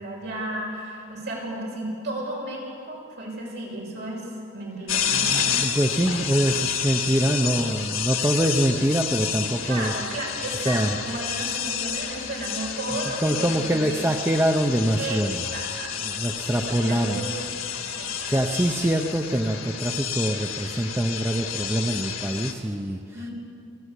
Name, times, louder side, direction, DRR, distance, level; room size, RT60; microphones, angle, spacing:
voice 1, 0.0-4.2 4.5-5.3 9.6-14.1 15.0-15.2 15.5-16.0 16.4-17.6 18.0-18.3 23.1-23.3, right 1 dB, 55° right, -2 dB, 6.1 m, -33 dB
sound 1, 4.9-22.5, left 8 dB, 85° left, 2.0 m, -30 dB
voice 2, 5.1-9.9 10.6-10.9 13.2-15.4 16.0-17.2 18.2-23.0, right 1 dB, 10° right, 3 dB, 0.7 m, -24 dB
28.0 x 11.5 x 8.3 m, 2.5 s
head